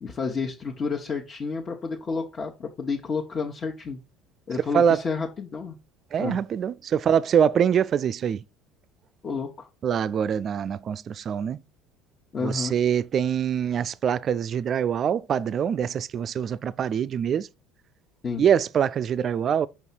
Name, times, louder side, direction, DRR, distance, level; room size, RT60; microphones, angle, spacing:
voice 1, 0.0-4.0 4.5-5.8 6.2-6.4 9.2-9.7 12.3-12.7 18.2-18.4, left 4 dB, 35° left, 1.2 m, -30 dB
voice 2, 6.1-8.4 9.8-11.6 12.4-17.5 18.4-19.7, right 8 dB, 40° right, 0.4 m, -24 dB
5.8 x 5.4 x 4.5 m
figure-of-eight pair, 60°, 0 cm